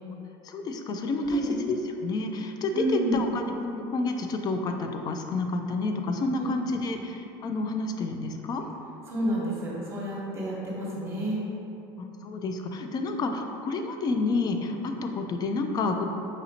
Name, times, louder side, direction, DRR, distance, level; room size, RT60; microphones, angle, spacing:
voice 1, 0.4-8.6 12.0-16.1, left 3 dB, 35° left, 5 dB, 0.3 m, -29 dB
voice 2, 1.2-1.6 2.7-3.2 6.4-6.5 9.1-11.4, right 1 dB, 20° right, -5 dB, 1.0 m, -29 dB
5.0 x 2.7 x 2.8 m, 2.9 s
supercardioid pair, 120°, 12 cm